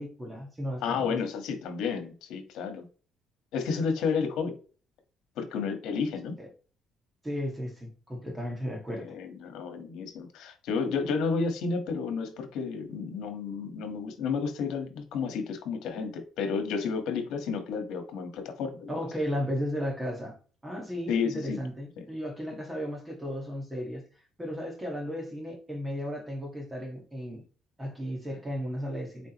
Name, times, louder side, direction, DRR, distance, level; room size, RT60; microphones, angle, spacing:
voice 1, 0.0-1.2 6.4-6.5 7.2-9.1 18.9-20.4 20.6-24.0 24.4-27.4 27.8-29.3, equal, 10° right, 1.7 m, -35 dB
voice 2, 0.8-2.9 3.5-4.6 5.4-6.3 8.9-18.9 21.1-21.6 22.0-22.1, left 5 dB, 80° left, 1.5 m, -31 dB
8.4 x 3.8 x 3.0 m
cardioid pair, 160°, 0 cm